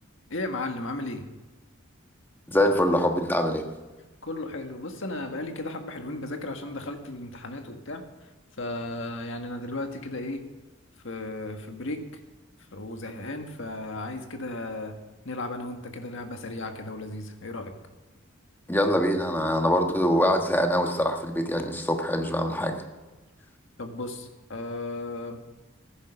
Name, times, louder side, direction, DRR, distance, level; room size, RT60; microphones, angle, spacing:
voice 1, 0.3-1.2 4.2-8.0 8.6-10.4 11.0-12.0 12.7-14.9 15.2-17.7 23.8-25.4, left 2 dB, 65° left, 5 dB, 1.7 m, -35 dB
voice 2, 2.5-3.6 18.7-22.8, equal, 10° left, 4 dB, 1.4 m, -24 dB
14.5 x 10.5 x 5.9 m, 1.2 s
head